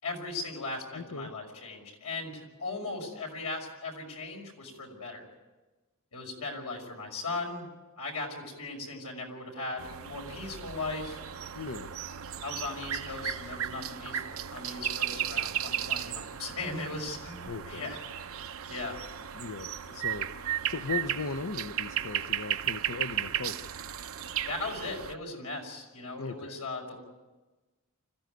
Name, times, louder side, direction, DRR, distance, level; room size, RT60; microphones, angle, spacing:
voice 1, 0.0-5.3 6.1-7.7 8.0-11.2 12.4-18.2 18.7-19.0 24.5-27.0, left 3 dB, 85° left, 2 dB, 5.8 m, -38 dB
voice 2, 0.9-1.3 11.5-11.9 17.4-18.0 19.3-23.7 26.2-26.6, left 4 dB, 65° left, 9 dB, 0.8 m, -38 dB
sound 1, 9.8-25.1, right 10 dB, 65° right, 0.8 m, -35 dB
26.0 x 15.0 x 9.3 m, 1.2 s
head